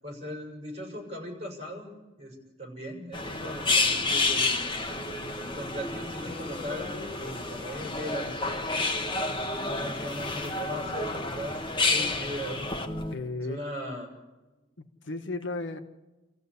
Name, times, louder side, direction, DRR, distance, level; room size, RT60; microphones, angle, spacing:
voice 1, 0.0-4.5 4.9-5.0 5.5-8.7 9.3-11.6 11.9-12.7 13.5-14.1, equal, 35° right, 0 dB, 6.7 m, -38 dB
sound 1, 3.1-13.2, left 3 dB, 25° left, 1.5 m, -30 dB
voice 2, 13.1-13.6 14.8-15.8, left 2 dB, 75° left, 7 dB, 1.4 m, -34 dB
27.0 x 15.0 x 8.3 m, 1.1 s
head